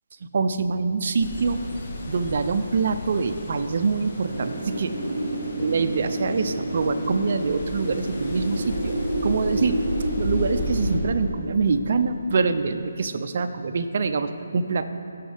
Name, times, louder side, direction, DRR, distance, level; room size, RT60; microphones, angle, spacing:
voice 1, 0.3-1.6 2.1-5.0 5.6-9.0 9.2-9.8 10.2-14.9, right 4 dB, 45° right, 9 dB, 0.4 m, -25 dB
sound 1, 1.2-11.0, left 1 dB, 40° left, 1.5 m, -34 dB
Wind, 4.3-13.0, right 1 dB, 60° right, 1.1 m, -30 dB
14.0 x 6.2 x 3.4 m, 2.7 s
hypercardioid pair, 165°, 0 cm